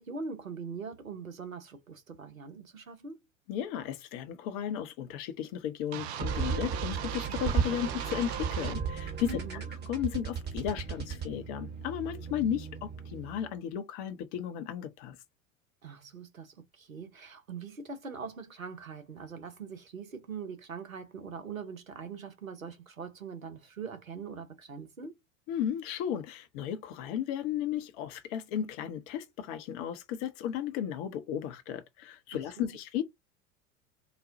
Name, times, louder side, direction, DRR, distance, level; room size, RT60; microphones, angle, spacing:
voice 1, 0.0-3.2 9.3-9.6 15.8-25.1 32.6-32.7, right 5 dB, 85° right, 0.8 m, -42 dB
voice 2, 3.5-15.2 25.5-33.0, left 10 dB, 45° left, 0.7 m, -35 dB
sound 1, 5.9-8.8, right 11 dB, 55° right, 0.5 m, -39 dB
sound 2, 6.2-13.5, right 6 dB, 25° right, 1.1 m, -35 dB
4.0 x 2.2 x 2.6 m
figure-of-eight pair, 75°, 39 cm